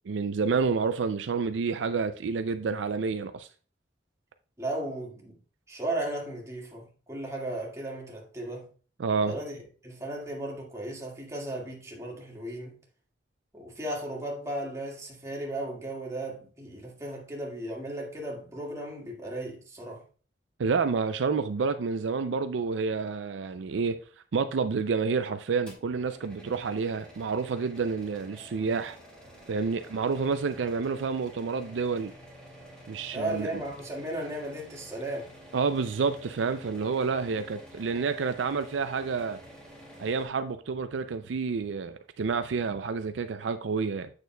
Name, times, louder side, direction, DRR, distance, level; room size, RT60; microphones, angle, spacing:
voice 1, 0.1-3.5 9.0-9.4 20.6-24.0 24.3-29.0 29.5-32.1 32.9-33.5 35.5-39.4 40.0-44.1, right 5 dB, 75° right, 0.4 m, -29 dB
voice 2, 4.6-5.4 5.7-8.7 9.3-12.7 13.5-20.0 33.1-35.3, right 1 dB, 15° right, 1.9 m, -35 dB
sound 1, 25.7-40.3, equal, 5° left, 2.3 m, -50 dB
8.2 x 6.7 x 2.3 m
head